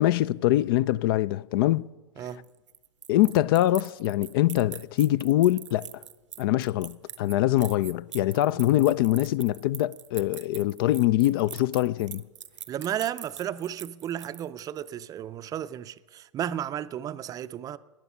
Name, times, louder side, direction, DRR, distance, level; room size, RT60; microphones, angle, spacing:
voice 1, 0.0-1.8 3.1-6.0 6.4-12.2, left 15 dB, 50° left, 0.4 m, -23 dB
sound 1, 2.3-14.9, right 9 dB, 80° right, 0.8 m, -43 dB
voice 2, 12.7-17.8, right 10 dB, 25° right, 0.5 m, -33 dB
18.0 x 11.0 x 5.6 m
hypercardioid pair, 110°, 15 cm